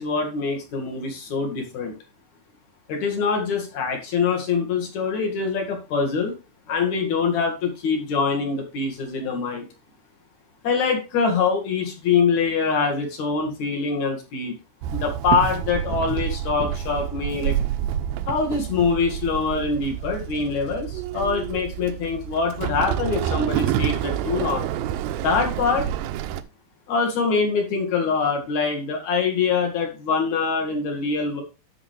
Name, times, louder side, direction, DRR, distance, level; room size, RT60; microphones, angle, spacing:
voice 1, 0.0-1.9 2.9-6.3 6.7-9.7 10.6-14.5 14.9-17.6 18.3-24.7 25.2-25.9 26.9-31.4, left 5 dB, 55° left, 2 dB, 2.9 m, -24 dB
Walk footsteps / Chatter / Hiss, 14.8-26.4, right 11 dB, 80° right, 2.2 m, -28 dB
12.5 x 5.0 x 3.3 m, 0.30 s
omnidirectional pair, 4.4 m